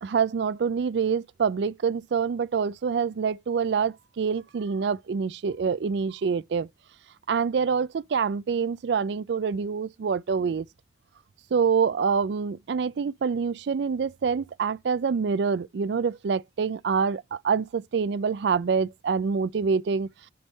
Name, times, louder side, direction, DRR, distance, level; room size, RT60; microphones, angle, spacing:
voice 1, 0.0-6.7 7.3-10.7 11.5-20.1, right 5 dB, 65° right, 0.4 m, -26 dB
9.4 x 3.7 x 4.0 m
head